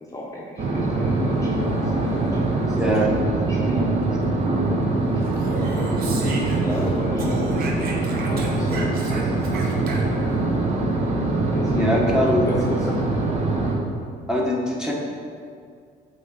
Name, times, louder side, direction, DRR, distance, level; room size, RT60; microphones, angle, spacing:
voice 1, 0.0-2.8 3.5-3.9 5.6-7.9 8.3-10.1 11.5-13.2, left 1 dB, 20° left, -4 dB, 0.9 m, -35 dB
sound 1, 0.6-13.8, right 2 dB, 40° right, 1.0 m, -23 dB
voice 2, 2.7-3.1 3.7-4.2 6.1-6.2 11.7-12.4 14.3-14.9, equal, 5° right, -3 dB, 1.2 m, -23 dB
Speech, 5.2-6.9 7.2-10.3, right 2 dB, 65° right, 1.0 m, -34 dB
8.1 x 3.8 x 4.1 m, 2.2 s
cardioid pair, 110°, 17 cm